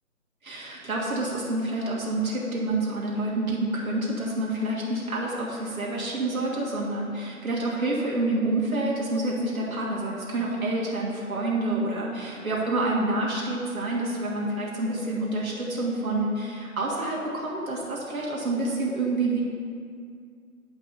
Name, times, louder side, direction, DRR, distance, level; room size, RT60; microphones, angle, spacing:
voice 1, 0.4-19.4, right 2 dB, 70° right, -5 dB, 1.9 m, -28 dB
8.8 x 5.3 x 4.1 m, 2.2 s
hypercardioid pair, 175°, 44 cm